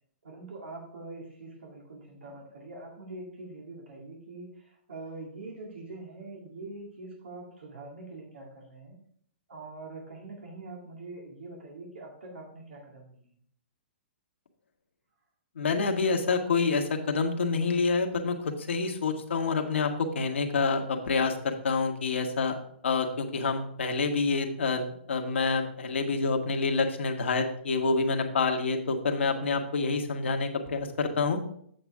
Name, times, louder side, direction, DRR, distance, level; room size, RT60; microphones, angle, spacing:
voice 1, 0.2-4.5 4.9-9.0 9.5-13.1, right 2 dB, 80° right, 0 dB, 2.1 m, -44 dB
voice 2, 15.5-22.5 22.8-31.4, left 4 dB, 80° left, 3 dB, 1.4 m, -27 dB
7.8 x 7.3 x 3.5 m, 0.65 s
hypercardioid pair, 145°, 6 cm